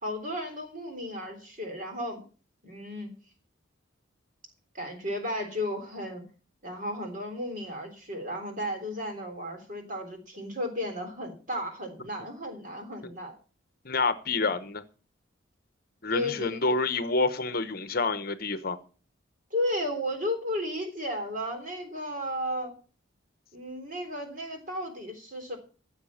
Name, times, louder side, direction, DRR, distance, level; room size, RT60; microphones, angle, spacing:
voice 1, 0.0-2.2 2.6-3.1 4.7-6.2 6.6-13.4 14.4-14.5 16.1-16.6 19.5-22.7 23.5-25.6, left 1 dB, 40° right, 3.6 m, -34 dB
voice 2, 13.8-14.8 16.0-18.8, left 3 dB, 50° left, 1.0 m, -28 dB
15.0 x 7.3 x 7.3 m
head